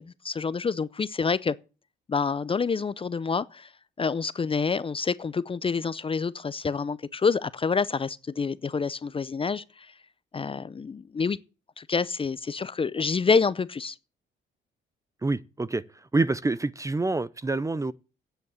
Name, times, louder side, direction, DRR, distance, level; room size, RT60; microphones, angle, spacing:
voice 1, 0.0-1.6 2.1-3.7 4.0-9.9 10.3-11.4 11.8-14.0, left 5 dB, 25° left, 0.5 m, -27 dB
voice 2, 15.2-15.8 16.1-17.9, right 3 dB, 15° right, 0.5 m, -26 dB
9.5 x 8.1 x 8.8 m
cardioid pair, 90°, 20 cm